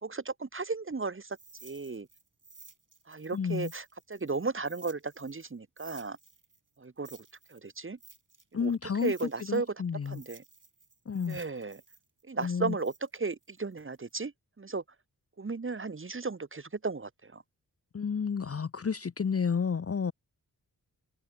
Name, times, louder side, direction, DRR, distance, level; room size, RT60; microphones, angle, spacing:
voice 1, 0.0-1.4 1.6-2.1 3.1-6.2 6.8-8.0 8.5-8.7 9.0-9.7 10.1-10.4 11.3-11.8 12.3-14.8 15.4-17.4, right 4 dB, 30° right, 0.8 m, -35 dB
sound 1, 1.3-5.5 5.8-9.7 10.0-14.1, right 3 dB, 50° right, 4.7 m, -55 dB
voice 2, 3.3-3.7 8.5-9.1 9.5-10.2 11.1-11.4 12.4-12.8 17.9-20.1, left 6 dB, 35° left, 0.5 m, -31 dB
wide cardioid pair, 75°, 40 cm